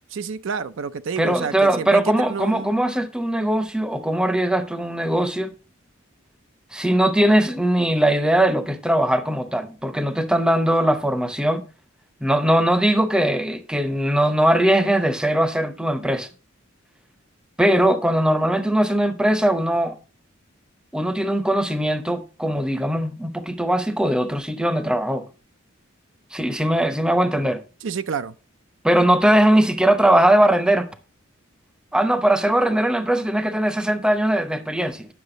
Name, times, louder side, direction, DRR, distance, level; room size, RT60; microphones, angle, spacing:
voice 1, 0.1-2.7 27.8-28.3, right 6 dB, 65° right, 0.4 m, -29 dB
voice 2, 1.2-5.5 6.7-11.6 12.2-16.3 17.6-20.0 20.9-25.3 26.3-27.6 28.8-30.9 31.9-35.1, right 1 dB, 5° right, 0.7 m, -20 dB
9.9 x 6.3 x 3.8 m
head